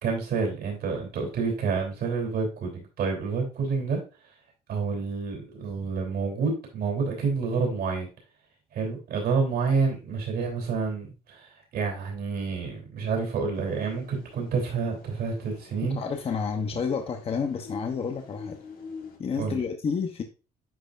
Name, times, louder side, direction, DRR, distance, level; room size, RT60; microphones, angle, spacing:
voice 1, 0.0-4.0 4.7-8.1 8.7-16.0 19.3-19.6, right 5 dB, 65° right, 1 dB, 3.2 m, -28 dB
sound 1, 13.5-19.2, left 4 dB, 60° left, 1.7 m, -45 dB
voice 2, 15.9-18.6 19.2-20.2, left 6 dB, 35° left, 4 dB, 0.8 m, -30 dB
10.5 x 4.3 x 2.5 m, 0.32 s
cardioid pair, 110°, 17 cm